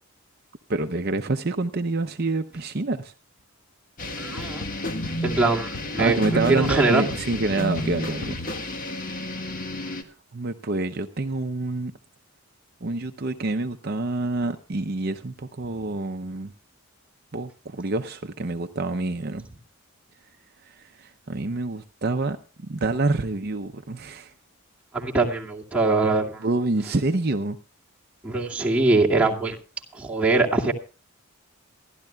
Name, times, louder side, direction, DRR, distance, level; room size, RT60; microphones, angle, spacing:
voice 1, 0.7-3.1 6.0-8.4 10.0-11.9 12.8-16.5 17.3-19.5 20.6-24.3 26.4-27.6, right 2 dB, 45° right, 0.6 m, -27 dB
sound 1, 4.0-10.0, left 1 dB, 40° left, 1.5 m, -31 dB
voice 2, 4.2-4.6 5.2-7.0 24.9-26.4 28.2-29.6 29.9-30.7, right 3 dB, 5° right, 2.3 m, -22 dB
27.5 x 12.0 x 2.3 m
head